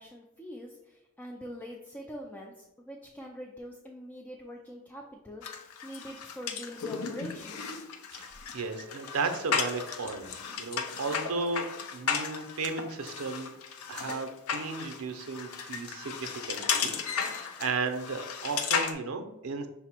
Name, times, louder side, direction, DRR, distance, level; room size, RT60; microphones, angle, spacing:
voice 1, 0.0-7.8, equal, 10° left, -1 dB, 0.3 m, -44 dB
sound 1, 5.4-18.9, left 6 dB, 85° left, 0.5 m, -35 dB
voice 2, 8.5-10.3 10.6-13.5 13.9-19.7, right 4 dB, 75° right, 6 dB, 0.5 m, -34 dB
5.6 x 2.0 x 4.3 m, 0.94 s
head